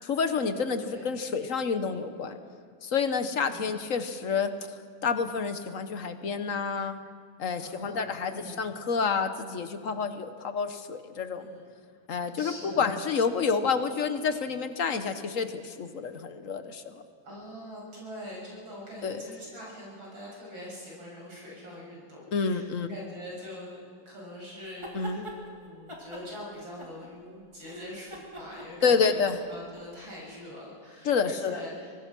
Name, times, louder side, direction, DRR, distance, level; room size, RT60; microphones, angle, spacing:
voice 1, 0.0-2.4 2.8-4.5 5.0-7.0 7.4-11.5 12.1-17.0 19.0-19.2 22.3-22.9 24.9-25.3 28.8-29.4 31.0-31.6, left 5 dB, 50° left, 9 dB, 1.3 m, -29 dB
voice 2, 0.7-1.1 3.3-3.7 7.6-8.6 11.3-11.6 12.3-12.9 17.2-23.8 24.1-31.9, left 1 dB, 85° right, -3 dB, 7.9 m, -44 dB
sound 1, 24.6-25.4 25.9-27.3 27.6-29.8, equal, 15° right, 3.0 m, -43 dB
24.5 x 19.0 x 6.1 m, 2.1 s
omnidirectional pair, 2.1 m